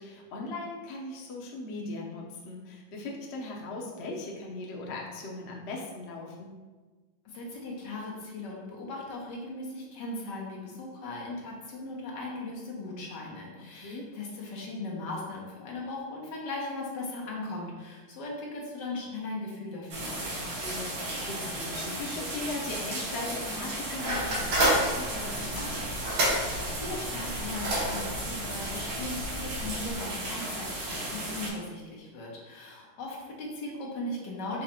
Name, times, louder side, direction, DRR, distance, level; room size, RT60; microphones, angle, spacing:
voice 1, 0.0-6.5 13.7-14.1 20.3-25.9, left 2 dB, 85° left, -2 dB, 0.5 m, -39 dB
voice 2, 7.2-20.2 26.4-34.6, left 2 dB, 65° left, -3 dB, 1.5 m, -38 dB
sound 1, 19.9-31.5, right 1 dB, 65° right, 1.8 m, -35 dB
sound 2, 24.0-29.9, right 1 dB, 85° right, 2.1 m, -30 dB
5.1 x 2.3 x 4.3 m, 1.3 s
omnidirectional pair, 2.2 m